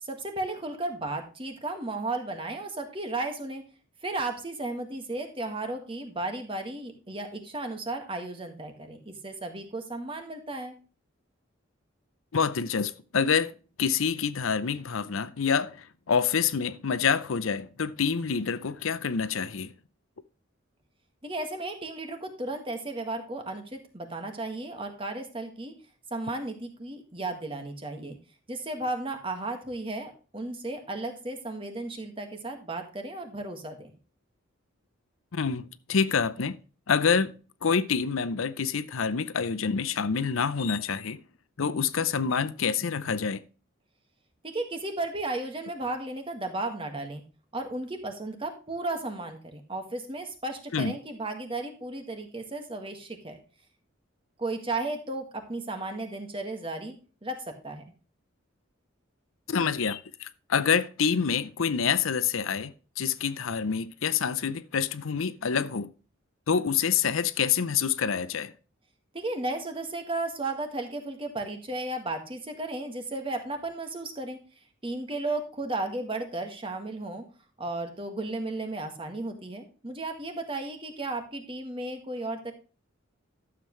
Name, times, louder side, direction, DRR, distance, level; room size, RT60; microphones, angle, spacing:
voice 1, 0.0-3.6 4.0-10.7 21.2-25.7 26.1-28.2 28.5-33.9 44.4-47.2 47.5-53.4 54.4-56.9 57.2-57.8 69.1-74.4 74.8-77.2 77.6-82.5, right 2 dB, 25° right, 1.8 m, -34 dB
voice 2, 12.3-13.5 13.8-19.7 35.3-36.6 36.9-37.3 37.6-41.2 41.6-43.4 50.7-50.9 59.5-65.9 66.5-68.5, left 6 dB, 85° left, 0.6 m, -27 dB
12.0 x 7.4 x 3.2 m
head